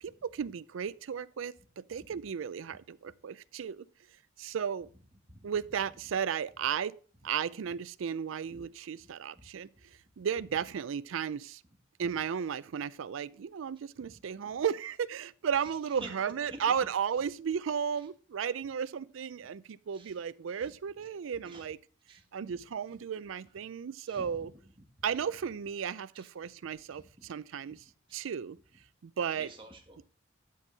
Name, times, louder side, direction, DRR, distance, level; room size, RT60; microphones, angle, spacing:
voice 1, 0.0-3.9 4.4-4.9 5.4-6.9 7.2-9.7 10.2-11.6 12.0-21.8 22.3-24.5 25.0-27.8 28.1-28.6 29.0-29.5, right 7 dB, 80° right, 0.4 m, -34 dB
voice 2, 16.5-16.8 19.9-20.1 21.4-21.7 22.1-22.2 24.1-24.5 26.2-26.5 26.9-27.3 28.1-28.3 29.4-30.1, right 2 dB, 25° right, 1.7 m, -49 dB
11.5 x 5.3 x 4.0 m
head